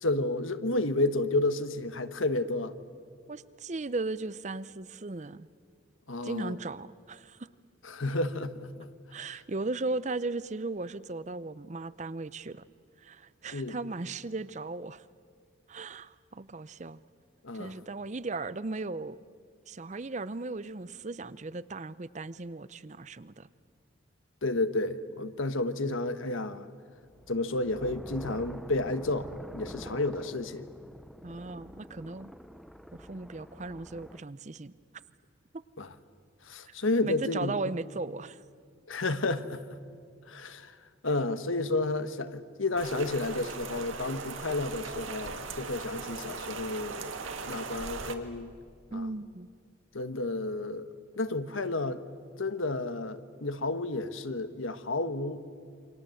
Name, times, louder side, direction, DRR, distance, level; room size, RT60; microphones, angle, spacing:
voice 1, 0.0-2.7 6.1-6.6 7.8-8.7 13.5-13.8 17.4-17.8 24.4-26.7 27.3-30.7 35.8-35.9 36.5-37.5 38.9-39.8 40.3-40.8 41.0-47.1 47.4-48.5 48.9-49.1 49.9-50.9 51.1-52.0 52.4-55.4, left 2 dB, 85° left, 1.3 m, -31 dB
voice 2, 3.3-5.5 6.2-7.4 9.1-12.6 13.0-15.0 15.7-17.0 17.6-19.2 19.7-23.5 31.2-32.3 32.9-34.7 37.0-38.4 48.9-49.5, right 3 dB, 35° right, 0.6 m, -37 dB
sound 1, 27.0-34.2, equal, ahead, 0.7 m, -47 dB
Rain, 42.8-48.1, right 4 dB, 85° right, 2.0 m, -39 dB
28.5 x 25.5 x 7.8 m
head